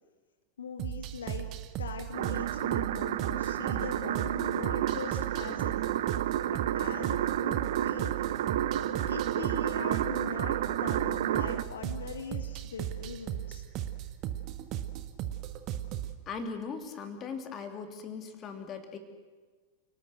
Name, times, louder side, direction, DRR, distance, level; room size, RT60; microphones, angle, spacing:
voice 1, 0.6-1.5 1.8-5.7 6.1-8.5 9.1-13.6, left 5 dB, 70° left, 6 dB, 2.0 m, -41 dB
sound 1, 0.8-16.2, right 11 dB, 40° right, 1.6 m, -37 dB
sound 2, 2.1-11.6, right 12 dB, 55° right, 0.9 m, -31 dB
voice 2, 16.2-19.0, left 5 dB, 30° left, 6 dB, 3.2 m, -39 dB
29.5 x 18.5 x 8.0 m, 1.4 s
figure-of-eight pair, 90°, 0 cm